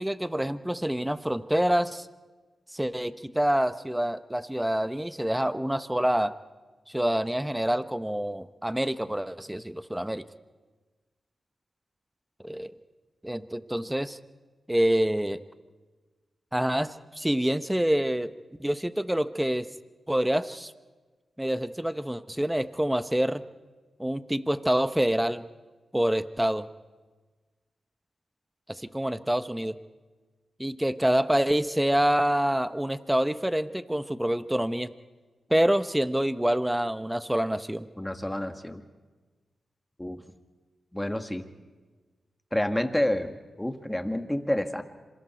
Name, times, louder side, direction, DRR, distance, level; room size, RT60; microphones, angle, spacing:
voice 1, 0.0-2.1 2.7-6.3 6.9-10.2 12.4-12.7 13.2-14.2 14.7-15.4 16.5-18.3 18.6-19.7 20.1-20.7 21.4-23.4 24.0-25.5 25.9-26.7 28.7-29.7 30.6-34.9 35.5-37.9, right 1 dB, 10° right, 12 dB, 1.0 m, -26 dB
voice 2, 38.0-38.8 40.0-40.2 40.9-41.5 42.5-44.8, left 1 dB, 10° left, 7 dB, 1.8 m, -29 dB
26.5 x 24.0 x 4.5 m, 1.3 s
cardioid pair, 50°, 0 cm